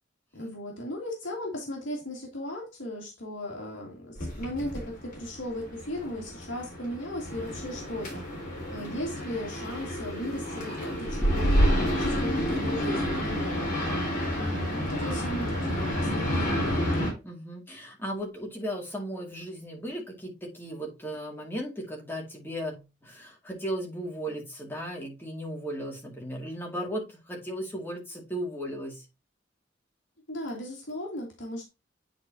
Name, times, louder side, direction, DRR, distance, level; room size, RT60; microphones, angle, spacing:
voice 1, 0.3-8.2 8.7-13.7 14.3-17.1 30.3-31.7, left 1 dB, 80° left, 2.1 m, -37 dB
sound 1, 4.2-17.1, equal, 45° left, 3.9 m, -29 dB
voice 2, 17.2-29.1, equal, 10° left, 2.0 m, -36 dB
9.7 x 4.0 x 2.8 m
head